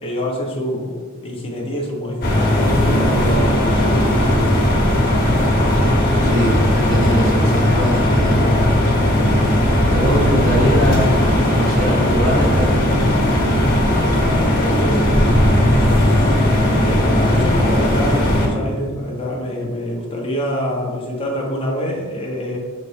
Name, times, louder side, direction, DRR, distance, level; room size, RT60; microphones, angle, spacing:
voice 1, 0.0-4.1 9.9-10.1 14.5-16.4 16.7-22.6, equal, 25° left, -2 dB, 1.0 m, -26 dB
sound 1, 2.2-18.5, left 1 dB, 45° left, 1.4 m, -16 dB
voice 2, 6.2-8.4 9.9-13.3, equal, 60° right, -2 dB, 1.4 m, -23 dB
6.7 x 4.1 x 3.4 m, 1.5 s
head